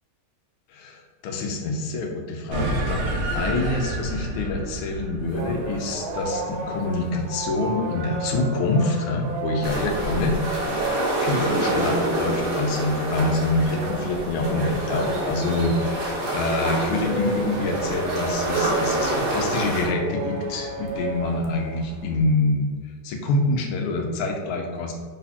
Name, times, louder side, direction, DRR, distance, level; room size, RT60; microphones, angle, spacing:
voice 1, 0.7-3.1 3.3-24.9, left 2 dB, 85° left, 2 dB, 1.5 m, -26 dB
sound 1, 2.5-7.3, right 1 dB, 70° right, 1.3 m, -29 dB
sound 2, 5.2-22.2, right 2 dB, 90° right, 0.7 m, -33 dB
sound 3, 9.6-19.9, right 1 dB, 45° right, 0.8 m, -27 dB
4.1 x 4.1 x 2.8 m, 1.5 s
omnidirectional pair, 2.3 m